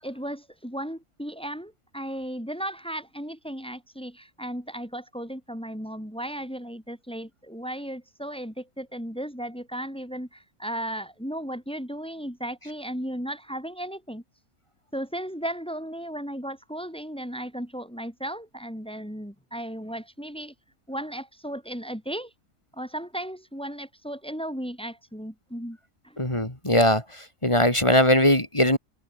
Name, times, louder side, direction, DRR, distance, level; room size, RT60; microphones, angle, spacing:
voice 1, 0.0-14.2 14.9-20.5 20.9-22.3 22.7-25.8 26.0-26.2, equal, 5° left, 5.9 m, -35 dB
voice 2, 26.2-27.0 27.4-28.8, left 1 dB, 20° left, 3.4 m, -20 dB
omnidirectional pair, 1.5 m